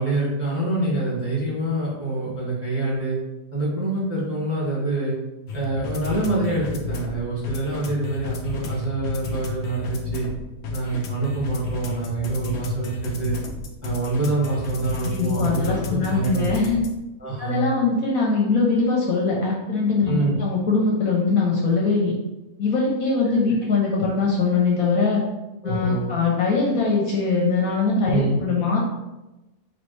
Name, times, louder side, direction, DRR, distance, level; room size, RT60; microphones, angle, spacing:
voice 1, 0.0-3.2 3.5-5.1 5.5-10.3 10.7-13.3 13.8-16.5 17.2-17.7 20.0-20.4 25.6-26.1 28.1-28.4, right 2 dB, 10° right, -7 dB, 1.2 m, -26 dB
sound 1, 5.5-17.0, left 3 dB, 90° left, 0.6 m, -32 dB
voice 2, 15.0-16.8 17.4-22.1 22.6-25.2 25.6-28.8, left 4 dB, 65° left, -3 dB, 1.0 m, -22 dB
4.3 x 2.8 x 3.1 m, 1.0 s
omnidirectional pair, 1.8 m